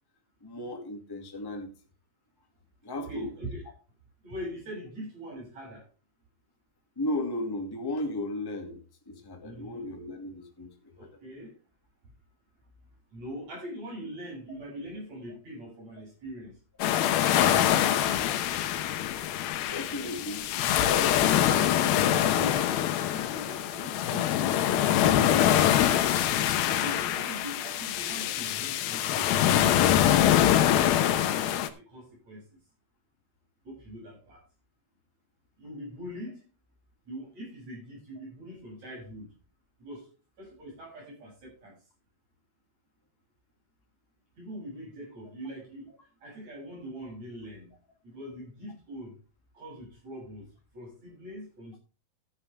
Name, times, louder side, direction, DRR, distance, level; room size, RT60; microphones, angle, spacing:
voice 1, 0.4-1.7 2.8-3.3 6.9-10.9 19.7-21.2 21.5-21.9, left 1 dB, 10° left, 3 dB, 1.0 m, -35 dB
voice 2, 2.9-3.6 4.2-5.9 9.4-9.9 11.0-11.5 13.1-16.6 21.3-25.5 26.7-32.4 33.7-34.4 35.6-36.4 37.1-39.3 39.8-40.1 40.4-41.8 44.4-45.9 46.2-47.7 48.0-49.1 49.5-50.5 50.7-51.8, equal, 45° right, -1 dB, 8.5 m, -42 dB
sound 1, 16.8-31.7, left 11 dB, 75° left, 2.7 m, -24 dB
13.0 x 11.0 x 3.4 m, 0.32 s
omnidirectional pair, 4.5 m